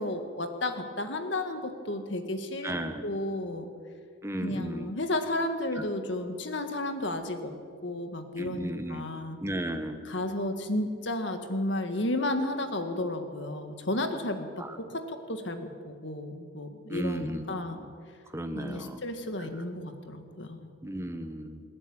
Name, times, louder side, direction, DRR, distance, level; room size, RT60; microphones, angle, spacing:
voice 1, 0.0-3.7 4.4-7.6 7.8-9.4 10.0-14.6 14.9-17.8 18.5-20.7, left 1 dB, 60° left, 7 dB, 1.9 m, -33 dB
voice 2, 2.6-3.0 4.2-4.9 8.4-9.1 9.4-10.0 14.6-14.7 16.9-17.4 17.8-17.9 18.3-19.0 20.8-21.6, right 1 dB, 15° right, 7 dB, 1.3 m, -34 dB
28.5 x 11.0 x 9.0 m, 2.2 s
head